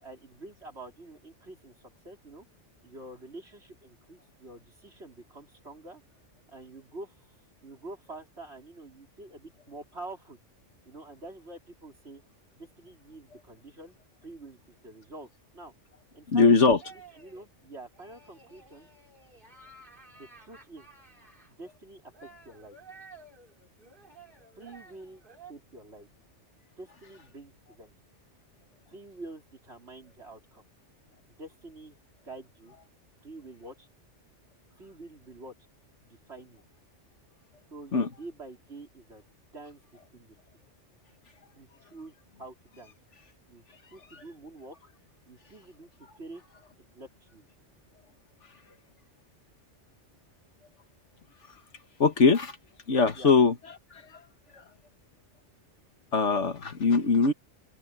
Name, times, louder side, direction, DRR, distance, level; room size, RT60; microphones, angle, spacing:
voice 1, 0.0-2.5 2.8-6.0 6.5-10.4 10.8-12.2 12.6-14.0 14.2-15.7 16.1-18.9 20.2-20.9 21.5-22.8 24.6-25.2 25.5-26.1 26.8-27.9 28.9-30.6 31.4-32.8 33.2-33.9 34.7-35.5 36.0-36.6 37.7-39.2 39.5-40.4 41.5-42.9 43.5-43.6 43.9-44.9 45.2-45.9 46.2-46.4 46.9-47.5 53.2-53.3, right 2 dB, 65° right, 4.9 m, -47 dB
voice 2, 16.3-16.8 37.9-38.1 52.0-52.6 52.9-53.5 54.1-54.2 56.1-57.3, left 4 dB, 75° left, 2.0 m, -21 dB
sound 1, 16.8-17.5 17.9-21.5 22.1-25.5, right 3 dB, 45° right, 5.2 m, -53 dB
open air
omnidirectional pair, 1.2 m